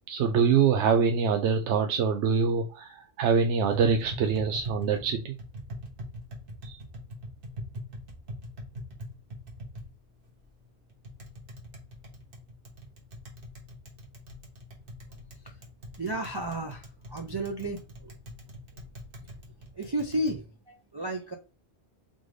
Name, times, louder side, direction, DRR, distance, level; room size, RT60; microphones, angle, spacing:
voice 1, 0.1-5.3 6.6-6.8, right 6 dB, 85° right, 5 dB, 0.9 m, -24 dB
Tap, 3.5-20.4, equal, 55° right, 1.3 m, -43 dB
voice 2, 16.0-17.8 19.8-21.3, right 1 dB, 35° right, 2 dB, 0.4 m, -32 dB
3.8 x 3.7 x 3.2 m, 0.30 s
omnidirectional pair, 1.1 m